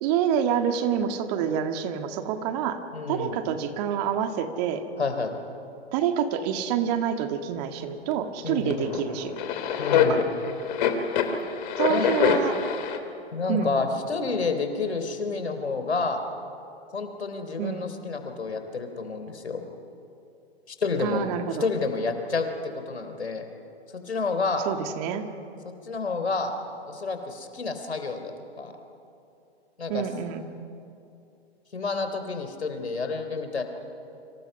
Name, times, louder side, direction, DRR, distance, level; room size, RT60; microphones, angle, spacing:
voice 1, 0.0-2.8 3.1-4.8 5.9-9.4 9.9-10.2 11.8-12.6 13.5-13.8 17.6-17.9 21.0-21.7 24.7-25.3 29.9-30.4, right 8 dB, 40° right, 6 dB, 2.0 m, -27 dB
voice 2, 2.9-3.4 5.0-5.4 8.4-8.9 9.8-10.2 11.9-12.1 13.3-16.2 16.9-19.6 20.7-21.3 21.6-22.5 22.7-23.5 23.9-24.7 25.8-26.5 26.9-28.7 29.8-30.0 31.7-33.6, left 4 dB, 80° left, 7 dB, 3.5 m, -29 dB
sound 1, 8.1-8.2 8.7-13.0, left 7 dB, 50° left, 2.9 m, -25 dB
30.0 x 26.0 x 5.6 m, 2.7 s
figure-of-eight pair, 115°, 32 cm